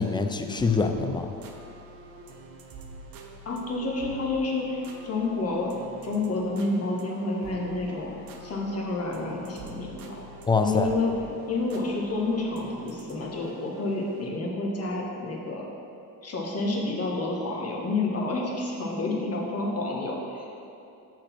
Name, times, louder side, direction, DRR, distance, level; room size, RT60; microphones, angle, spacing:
voice 1, 0.0-1.3 10.5-10.9, left 4 dB, 10° left, 6 dB, 0.3 m, -24 dB
sound 1, 0.6-14.4, right 2 dB, 50° right, 0.9 m, -46 dB
voice 2, 3.4-5.7 6.0-8.1 8.4-10.2 10.6-11.1 11.5-15.6 16.2-20.5, left 2 dB, 35° left, -1 dB, 1.4 m, -29 dB
6.3 x 4.1 x 5.9 m, 2.7 s
supercardioid pair, 80°, 44 cm